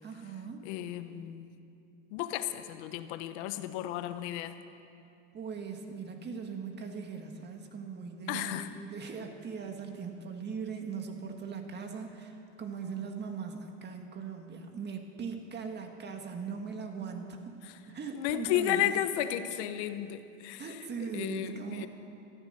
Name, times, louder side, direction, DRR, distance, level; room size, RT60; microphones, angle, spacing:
voice 1, 0.0-0.7 5.3-17.6 17.9-18.9 20.6-21.9, right 5 dB, 30° right, 4 dB, 1.9 m, -40 dB
voice 2, 0.6-1.5 2.1-4.6 8.3-8.7 17.6-17.8 18.1-20.6 21.0-21.9, left 12 dB, 70° left, 11 dB, 1.1 m, -33 dB
14.5 x 13.5 x 6.7 m, 2.6 s
supercardioid pair, 115°, 36 cm